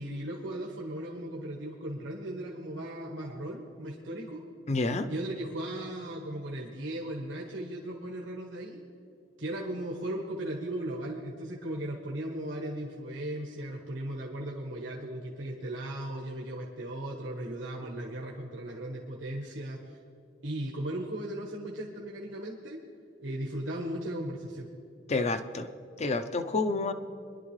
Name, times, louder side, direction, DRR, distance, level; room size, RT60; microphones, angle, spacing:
voice 1, 0.0-4.4 5.1-8.8 9.4-20.0 20.4-22.8 23.2-24.7, right 1 dB, 85° right, -1 dB, 1.3 m, -37 dB
voice 2, 4.7-5.1 25.1-25.7 26.0-26.9, left 3 dB, 35° left, 10 dB, 0.6 m, -29 dB
22.5 x 11.0 x 3.2 m, 2.6 s
head